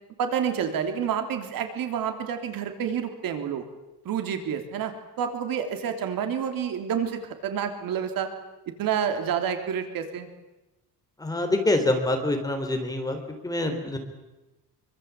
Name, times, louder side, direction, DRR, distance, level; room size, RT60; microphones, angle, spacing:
voice 1, 0.2-3.6 4.1-4.9 5.2-8.3 8.7-10.3, right 8 dB, 60° right, 6 dB, 3.5 m, -29 dB
voice 2, 11.2-13.2 13.4-14.0, left 2 dB, 10° left, 5 dB, 3.7 m, -25 dB
26.0 x 25.0 x 8.5 m, 1.0 s
cardioid pair, 180°, 39 cm